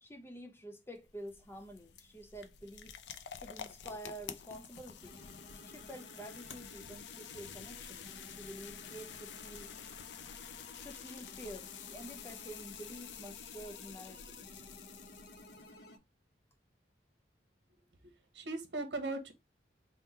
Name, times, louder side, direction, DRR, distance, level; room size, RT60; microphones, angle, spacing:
voice 1, 0.0-3.0 3.3-5.2 5.6-9.7 10.8-14.5, right 1 dB, 15° left, 0.5 m, -49 dB
sound 1, 0.9-15.8, left 8 dB, 80° left, 0.4 m, -49 dB
sound 2, 5.0-16.0, left 1 dB, 60° left, 0.8 m, -55 dB
voice 2, 18.0-19.3, right 2 dB, 80° right, 1.0 m, -39 dB
3.7 x 2.2 x 4.2 m
head